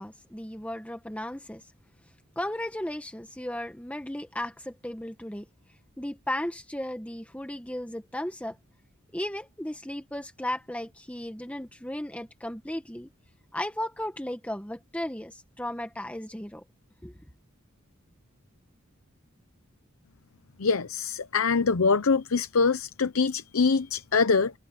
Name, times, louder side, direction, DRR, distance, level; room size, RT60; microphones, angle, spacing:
voice 1, 0.0-1.6 2.4-5.4 6.0-8.6 9.1-13.1 13.5-16.6 17.0-17.1, left 1 dB, 5° left, 1.1 m, -35 dB
voice 2, 20.6-24.5, left 4 dB, 85° left, 0.8 m, -24 dB
head